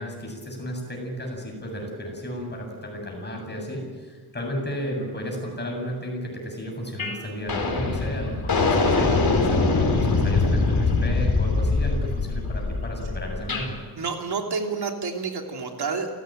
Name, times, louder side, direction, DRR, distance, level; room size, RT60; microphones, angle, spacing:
voice 1, 0.0-13.8, equal, 25° left, 1 dB, 7.7 m, -33 dB
sound 1, 7.0-7.2 7.5-13.7, left 3 dB, 60° left, 4.5 m, -23 dB
voice 2, 14.0-16.1, right 5 dB, 75° right, 2 dB, 3.0 m, -29 dB
29.0 x 16.5 x 9.1 m, 1.5 s
wide cardioid pair, 165°, 40 cm